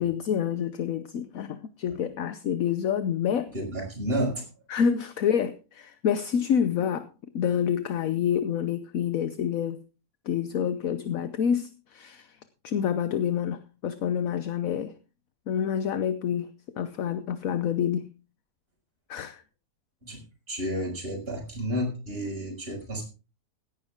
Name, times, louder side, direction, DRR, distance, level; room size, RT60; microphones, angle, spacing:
voice 1, 0.0-3.5 4.7-7.1 7.3-9.8 10.3-12.4 12.6-14.9 15.5-16.5 16.8-18.1 19.1-19.4, left 8 dB, 65° left, 1.2 m, -27 dB
voice 2, 3.5-4.4 20.0-20.2 20.5-23.1, equal, 35° right, 5.8 m, -31 dB
17.0 x 11.0 x 3.6 m
omnidirectional pair, 1.7 m